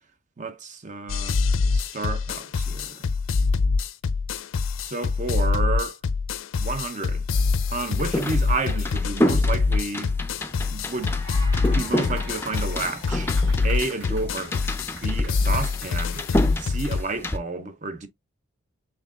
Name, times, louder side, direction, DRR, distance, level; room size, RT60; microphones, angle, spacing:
voice 1, 0.4-1.4 1.7-3.1 4.8-6.0 6.6-7.2 7.7-10.1 10.7-11.1 11.7-13.3 13.6-14.6 14.9-16.2 16.6-18.1, right 3 dB, 35° right, 0.7 m, -31 dB
sound 1, 1.1-17.0, left 4 dB, 90° left, 0.5 m, -24 dB
sound 2, 7.7-17.4, left 1 dB, 10° left, 0.4 m, -30 dB
sound 3, 10.6-17.3, right 1 dB, 55° right, 3.4 m, -44 dB
6.0 x 3.7 x 2.4 m
head